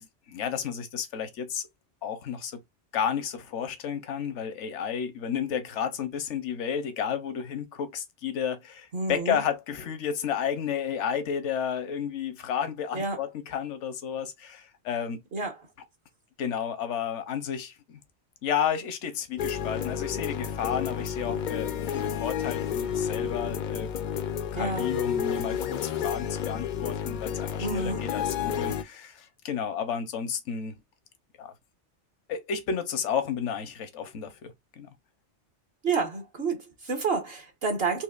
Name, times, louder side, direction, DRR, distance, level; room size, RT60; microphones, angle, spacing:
voice 1, 0.0-1.7 2.0-2.6 2.9-15.2 16.4-18.0 18.4-23.9 24.5-30.7 31.4-31.5 32.3-34.9, left 7 dB, 80° left, 1.1 m, -32 dB
voice 2, 8.9-9.4 12.9-13.2 15.3-15.6 24.5-24.9 27.6-28.0 35.8-38.0, right 4 dB, 55° right, 1.2 m, -29 dB
sound 1, 19.4-28.8, left 8 dB, 60° left, 0.5 m, -31 dB
4.4 x 2.7 x 2.4 m
omnidirectional pair, 1.2 m